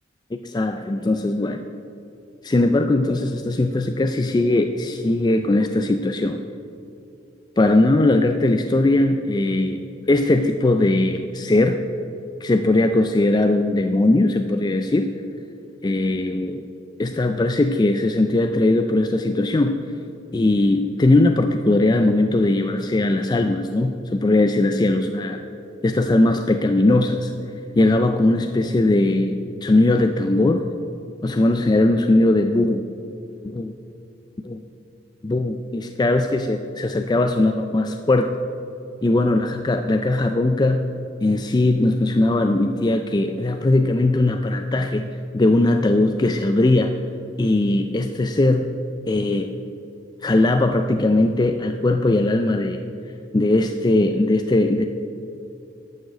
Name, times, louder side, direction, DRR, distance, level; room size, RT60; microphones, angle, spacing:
voice 1, 0.4-1.7 2.4-6.4 7.6-9.8 10.1-11.8 12.4-15.1 15.8-16.7 17.0-19.8 20.3-25.4 25.8-27.3 27.8-30.7 31.2-32.9 33.4-33.7 34.4-34.6 35.2-38.3 39.0-40.9 41.2-45.1 45.3-47.0 47.4-48.7 49.1-49.5 50.2-52.8 53.3-54.8, left 2 dB, 20° left, 6 dB, 0.4 m, -19 dB
11.5 x 6.5 x 8.1 m, 2.7 s
head